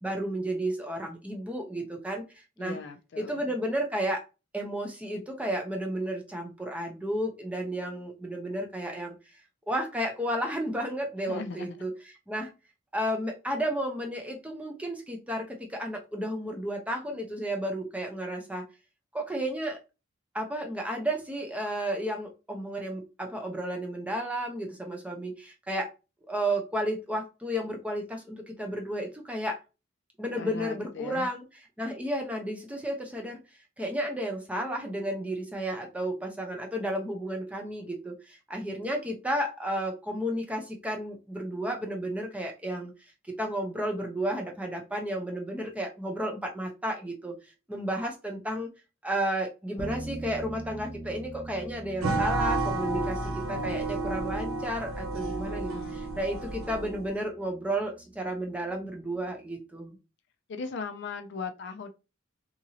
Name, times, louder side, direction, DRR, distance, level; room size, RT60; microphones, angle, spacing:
voice 1, 0.0-2.8 3.2-4.2 4.5-9.1 9.7-11.9 12.3-12.5 12.9-18.7 19.1-19.8 20.3-25.9 26.3-29.6 30.2-31.4 31.8-33.4 33.8-42.9 43.3-47.3 47.7-48.7 49.0-60.0, right 1 dB, 5° right, 0.5 m, -32 dB
voice 2, 2.6-3.4 11.3-11.8 30.3-31.3 55.5-56.5 60.5-61.9, left 4 dB, 55° left, 0.4 m, -39 dB
sound 1, 49.8-59.3, right 2 dB, 20° left, 0.8 m, -44 dB
sound 2, 52.0-57.2, right 2 dB, 80° right, 0.6 m, -31 dB
2.8 x 2.6 x 2.7 m
head